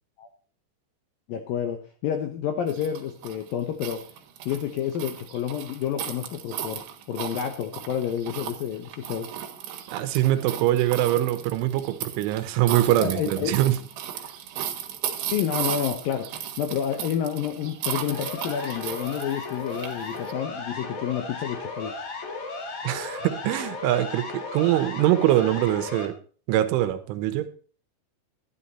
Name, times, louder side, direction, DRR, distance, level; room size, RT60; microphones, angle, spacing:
voice 1, 1.3-4.0 4.5-9.3 12.9-13.5 15.3-16.3 16.6-21.9, left 9 dB, 75° left, 2.1 m, -29 dB
sound 1, 2.7-20.3, right 10 dB, 70° right, 3.3 m, -36 dB
voice 2, 9.9-13.8 22.9-26.2 26.5-27.5, right 14 dB, 85° right, 3.5 m, -23 dB
Siren, 18.1-26.1, left 3 dB, 50° left, 2.0 m, -35 dB
12.0 x 11.5 x 4.2 m
omnidirectional pair, 5.4 m